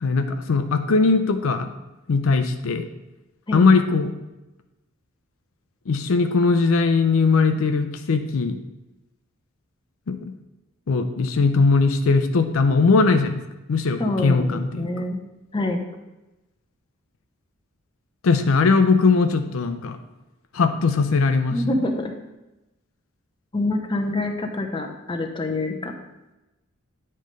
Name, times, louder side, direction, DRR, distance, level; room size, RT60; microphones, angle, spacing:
voice 1, 0.0-1.7 2.1-2.9 3.5-4.1 5.9-8.6 10.1-10.3 10.9-13.4 13.7-15.1 18.2-20.0 20.5-21.6, left 4 dB, 70° left, 8 dB, 0.5 m, -20 dB
voice 2, 14.0-15.2 15.5-15.8 21.5-22.1 23.5-25.9, left 2 dB, 25° left, 3 dB, 0.6 m, -26 dB
9.3 x 3.2 x 5.1 m, 1.0 s
head